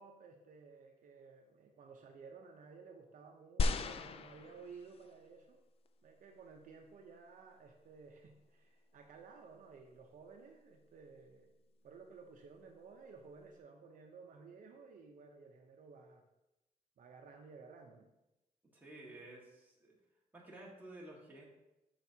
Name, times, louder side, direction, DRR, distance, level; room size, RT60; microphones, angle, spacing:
voice 1, 0.0-5.6 6.0-11.5 11.8-16.2 17.0-18.1, right 4 dB, 60° right, 2 dB, 0.7 m, -55 dB
sound 1, 3.6-5.1 5.9-6.0, left 3 dB, 40° left, 0.3 m, -36 dB
voice 2, 18.7-19.9 20.3-21.4, right 1 dB, 10° right, -4 dB, 1.7 m, -53 dB
8.8 x 5.9 x 2.8 m, 0.95 s
wide cardioid pair, 150°, 15 cm